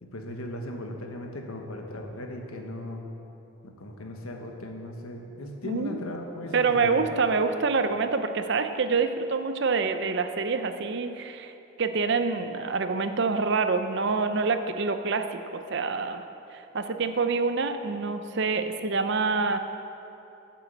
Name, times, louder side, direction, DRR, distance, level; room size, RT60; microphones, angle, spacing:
voice 1, 0.0-3.0 3.6-7.0, left 1 dB, 90° left, 2 dB, 1.3 m, -37 dB
voice 2, 6.5-11.5 11.8-16.2 16.5-19.6, right 4 dB, 55° right, 8 dB, 0.6 m, -26 dB
9.1 x 7.6 x 7.8 m, 3.0 s
head